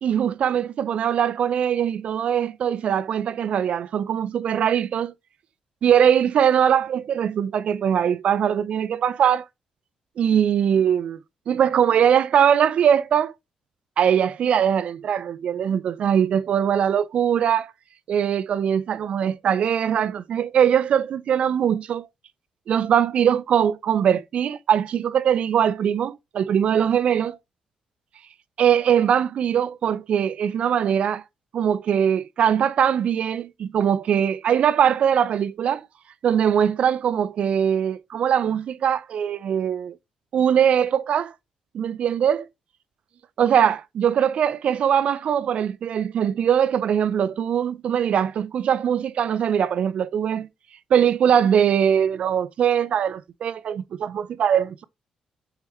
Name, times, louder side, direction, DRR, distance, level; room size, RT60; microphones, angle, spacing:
voice 1, 0.0-5.1 5.8-9.5 10.2-11.2 11.5-13.3 14.0-17.7 18.1-22.1 22.7-27.4 28.6-31.2 31.5-35.9 36.2-40.0 40.3-41.3 41.7-42.5 43.4-50.5 50.9-54.8, right 8 dB, 65° right, 0.5 m, -21 dB
6.5 x 4.8 x 3.1 m
cardioid pair, 85°, 2 cm